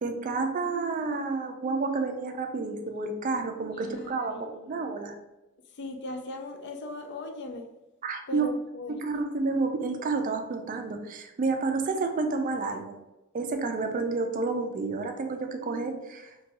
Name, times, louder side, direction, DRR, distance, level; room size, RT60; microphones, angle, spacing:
voice 1, 0.0-5.2 8.0-8.5 9.0-12.9 13.3-16.3, right 3 dB, 40° right, 5 dB, 0.3 m, -30 dB
voice 2, 3.7-4.9 5.8-7.7 8.3-9.0, left 2 dB, 55° left, 6 dB, 0.4 m, -39 dB
2.6 x 2.2 x 4.0 m, 1.0 s
head